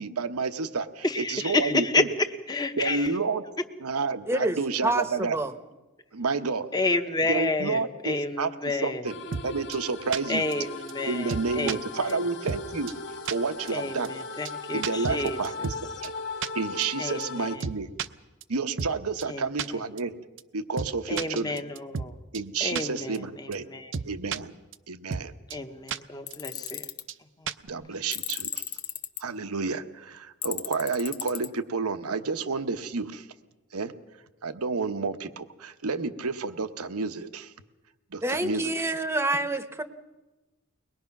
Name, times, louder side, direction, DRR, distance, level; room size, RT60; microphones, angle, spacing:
voice 1, 0.0-2.1 2.8-3.4 3.8-5.4 6.1-6.7 7.3-9.1 9.4-10.5 11.1-12.9 13.3-14.1 14.7-15.7 16.0-16.1 16.5-17.9 18.5-20.1 20.5-21.6 22.3-23.6 24.0-24.5 24.9-25.3 27.6-28.6 29.2-33.3 33.7-33.9 34.4-37.5 38.1-38.7, right 4 dB, 90° right, 9 dB, 1.0 m, -30 dB
voice 2, 1.0-3.1 6.7-9.0 10.3-12.2 13.7-15.4 17.0-17.7 19.3-19.4 21.1-22.2 22.6-23.9 25.5-26.8 27.4-27.5, left 2 dB, 20° left, 7 dB, 1.0 m, -30 dB
voice 3, 4.3-5.5 38.2-39.8, right 1 dB, 10° right, 9 dB, 0.9 m, -27 dB
sound 1, 9.0-17.6, left 4 dB, 55° left, 1.7 m, -38 dB
sound 2, 9.3-9.5 9.7-9.8 10.1-10.2 10.5-10.6 10.9-11.0 11.3-11.8 12.1-12.2 12.5-12.6 12.9-13.0 13.3-13.4 13.7-13.8 14.0-14.1 14.5-14.6 14.8-15.8 16.0-16.1 16.4-16.5 16.8-16.9 17.2-17.3 17.6-18.1 18.4-18.5 18.8-18.9 19.2-19.3 19.6-19.7 20.0-20.1 20.4-20.5 20.8-20.9 21.2-22.1 22.3-22.4 22.8-22.9 23.1-23.2 23.5-23.6 23.9-24.4 24.7-24.8 25.1-25.2 25.5-25.6 25.9-26.0 26.3-26.4 26.7-26.8 27.1-27.2 27.5-27.7, right 6 dB, 55° right, 0.6 m, -32 dB
Tools, 26.3-27.0 28.1-29.2 30.4-31.5, left 11 dB, 85° left, 1.0 m, -34 dB
23.0 x 20.5 x 6.0 m, 1.1 s
head